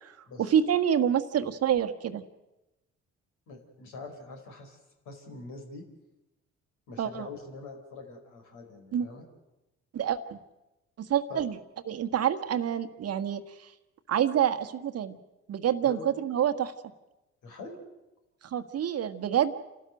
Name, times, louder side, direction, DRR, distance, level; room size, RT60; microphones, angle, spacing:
voice 1, 0.4-2.2 7.0-7.3 8.9-9.1 9.9-10.4 11.0-11.6 11.9-13.4 14.1-15.2 15.5-16.7 18.4-19.6, right 9 dB, 45° right, 9 dB, 1.6 m, -27 dB
voice 2, 3.5-4.8 5.0-5.8 6.9-9.3 11.3-11.4 15.8-16.1 17.4-17.8, left 3 dB, 55° left, 2 dB, 5.0 m, -44 dB
29.5 x 13.0 x 9.2 m, 1.0 s
figure-of-eight pair, 45°, 35 cm